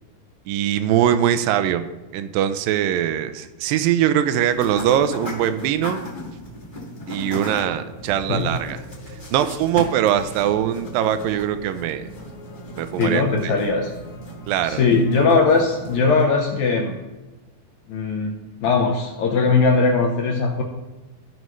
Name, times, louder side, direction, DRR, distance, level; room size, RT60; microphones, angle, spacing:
voice 1, 0.5-1.9 2.1-6.0 7.1-8.8 9.3-12.1 12.8-13.5 14.5-14.8, right 10 dB, 85° right, 11 dB, 2.0 m, -22 dB
sound 1, 4.3-16.2, left 1 dB, 40° left, 0.7 m, -38 dB
sound 2, 7.9-16.2, left 1 dB, 60° left, 1.5 m, -41 dB
voice 2, 13.0-13.9 14.6-16.9 17.9-18.3 18.6-20.6, left 4 dB, 80° left, 1 dB, 1.7 m, -19 dB
15.5 x 5.4 x 3.1 m, 1.1 s
omnidirectional pair, 4.5 m